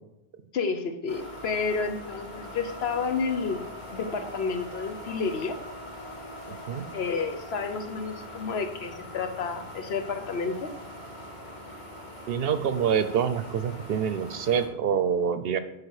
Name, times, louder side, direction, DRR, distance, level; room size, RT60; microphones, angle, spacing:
voice 1, 0.5-3.6 3.9-5.6 6.9-10.7, left 5 dB, 75° left, 7 dB, 1.1 m, -30 dB
sound 1, 1.1-14.7, left 1 dB, 45° left, 1.8 m, -42 dB
voice 2, 6.5-6.8 12.3-15.6, right 7 dB, 70° right, 11 dB, 0.8 m, -26 dB
9.7 x 4.7 x 4.8 m, 0.92 s
omnidirectional pair, 1.1 m